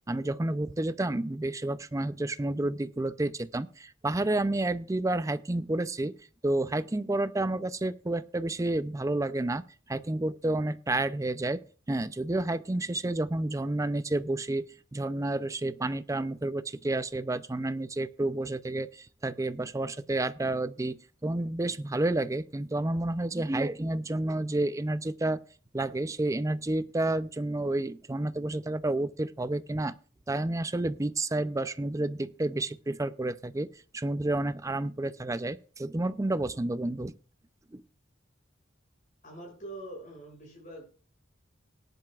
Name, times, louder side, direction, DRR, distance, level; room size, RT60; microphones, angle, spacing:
voice 1, 0.1-6.1 6.4-9.6 9.9-11.6 11.9-14.6 14.9-21.0 21.2-25.4 25.7-29.9 30.3-33.7 33.9-37.1 37.7-37.8, right 2 dB, 15° right, 14 dB, 0.4 m, -30 dB
voice 2, 39.2-40.9, right 1 dB, 40° left, 0 dB, 6.8 m, -44 dB
18.0 x 10.5 x 2.4 m, 0.39 s
head